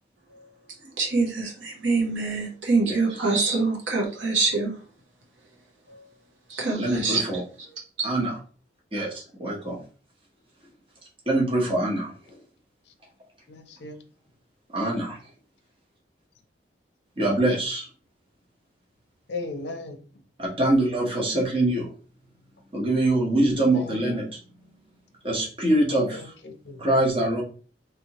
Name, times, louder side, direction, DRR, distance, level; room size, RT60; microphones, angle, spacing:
voice 1, 1.0-4.7 5.9-6.0 6.5-7.3 7.7-8.1, right 3 dB, 80° right, 1.0 m, -25 dB
voice 2, 6.7-7.4 8.0-8.3 8.9-9.1 9.4-9.8 11.3-12.1 14.7-15.2 17.2-17.9 20.4-21.9 22.7-24.2 25.2-26.2 26.8-27.4, right 1 dB, 30° right, 1.0 m, -23 dB
voice 3, 13.5-14.0 19.3-20.0 23.7-24.1 26.1-26.9, left 3 dB, 65° left, 0.6 m, -37 dB
3.4 x 2.8 x 2.9 m
head